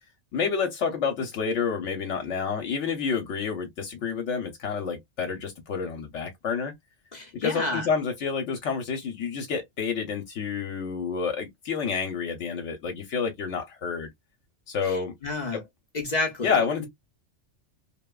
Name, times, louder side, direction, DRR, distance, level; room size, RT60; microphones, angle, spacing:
voice 1, 0.3-6.7 7.4-14.1 14.7-15.1 15.5-15.6 16.4-16.9, left 5 dB, 80° left, 1.0 m, -29 dB
voice 2, 7.1-7.9 14.8-15.6 15.9-16.9, left 3 dB, 45° left, 0.6 m, -30 dB
2.8 x 2.2 x 2.2 m
omnidirectional pair, 1.2 m